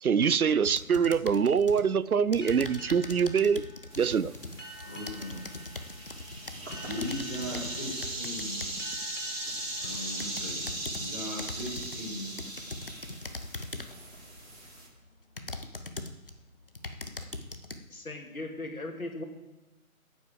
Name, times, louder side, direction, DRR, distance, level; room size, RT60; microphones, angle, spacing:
voice 1, 0.0-3.6 4.0-4.3, right 6 dB, 80° right, 19 dB, 0.6 m, -24 dB
sound 1, 0.6-1.9 2.3-9.0 9.6-11.1 11.4-12.0 12.4-14.0 14.6-14.7 15.4-16.3 16.7-17.8, left 2 dB, 40° left, 0.8 m, -41 dB
sound 2, 2.4-11.6, equal, 55° left, 3.1 m, -50 dB
sound 3, 3.9-14.9, right 1 dB, 60° right, 5.0 m, -39 dB
voice 2, 4.8-5.4 6.8-8.6 9.8-12.4, left 1 dB, 10° left, -7 dB, 1.1 m, -38 dB
voice 3, 17.9-19.2, left 2 dB, 75° left, 3 dB, 2.4 m, -38 dB
9.4 x 8.3 x 7.6 m, 1.0 s
figure-of-eight pair, 160°, 43 cm